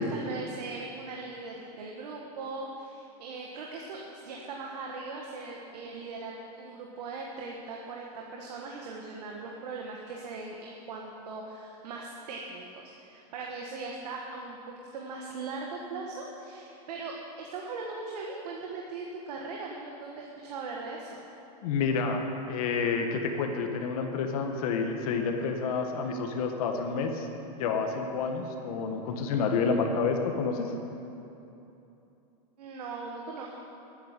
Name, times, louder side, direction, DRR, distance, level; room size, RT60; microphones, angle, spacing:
voice 1, 0.0-14.6 14.9-21.2 32.6-33.5, right 3 dB, 85° right, -1 dB, 1.7 m, -39 dB
voice 2, 21.6-27.3 27.6-30.7, left 5 dB, 65° left, 4 dB, 1.7 m, -29 dB
11.0 x 9.1 x 9.2 m, 2.9 s
supercardioid pair, 155°, 20 cm